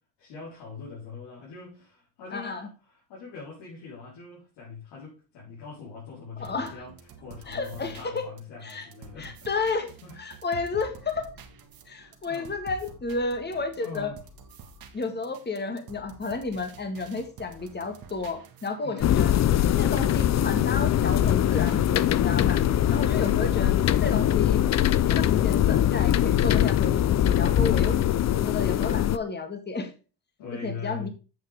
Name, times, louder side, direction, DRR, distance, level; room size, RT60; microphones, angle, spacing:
voice 1, 0.2-6.9 7.2-9.4 9.6-9.7 10.0-10.2 12.3-12.5 13.7-14.2 17.5-17.7 18.8-19.2 22.2-23.6 30.4-31.1, left 5 dB, 90° left, 4.2 m, -41 dB
voice 2, 2.3-2.7 6.4-6.8 7.5-8.2 8.6-8.9 9.2-11.4 11.9-14.1 14.9-19.3 19.8-22.6 22.9-24.6 25.1-28.0 28.5-29.9 30.6-31.1, left 3 dB, 25° left, 1.8 m, -32 dB
sound 1, 6.4-23.1, right 5 dB, 60° right, 1.7 m, -49 dB
sound 2, 19.0-29.2, left 11 dB, 40° left, 0.5 m, -22 dB
8.6 x 6.7 x 3.5 m
cardioid pair, 100°, 40 cm